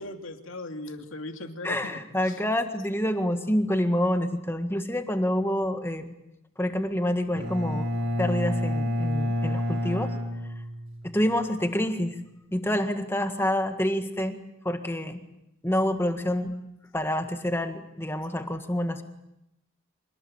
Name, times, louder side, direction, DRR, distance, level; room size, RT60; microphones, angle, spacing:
voice 1, 0.0-2.4, left 2 dB, 80° left, 5 dB, 2.6 m, -38 dB
voice 2, 1.6-6.2 6.6-7.9 8.2-10.1 11.0-12.2 12.5-14.3 14.7-15.2 15.6-16.5 16.9-19.0, left 1 dB, 10° left, 7 dB, 1.7 m, -27 dB
Bowed string instrument, 7.3-11.2, left 1 dB, 80° right, 5.7 m, -29 dB
26.5 x 19.5 x 8.8 m, 0.86 s
head